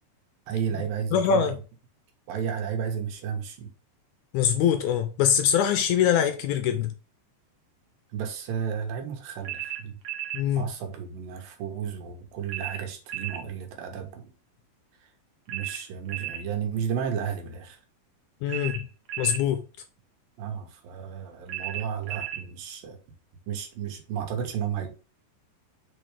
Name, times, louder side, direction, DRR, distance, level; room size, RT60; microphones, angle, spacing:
voice 1, 0.5-1.5 2.3-3.7 8.1-9.9 10.6-14.3 15.5-17.8 20.4-23.0 23.5-24.9, right 8 dB, 80° right, 2.9 m, -33 dB
voice 2, 1.1-1.6 4.3-6.9 10.3-10.7 18.4-18.9 19.2-19.6, left 8 dB, 80° left, 1.7 m, -23 dB
sound 1, 9.4-10.5 12.5-13.4 15.5-16.5 18.5-19.4 21.5-22.5, right 12 dB, 65° right, 1.9 m, -34 dB
6.2 x 4.5 x 3.3 m
omnidirectional pair, 4.0 m